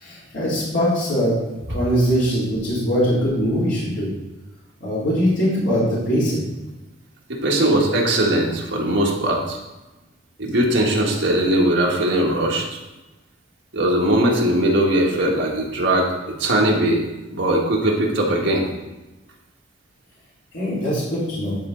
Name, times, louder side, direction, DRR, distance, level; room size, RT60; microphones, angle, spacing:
voice 1, 0.0-1.3 1.7-4.1 4.8-6.4 20.5-21.6, equal, 70° left, -8 dB, 2.5 m, -21 dB
voice 2, 7.3-9.6 10.4-12.6 13.7-16.1 16.4-17.0 17.3-18.6, right 1 dB, 65° right, -1 dB, 1.4 m, -19 dB
9.8 x 4.0 x 3.8 m, 1.1 s
head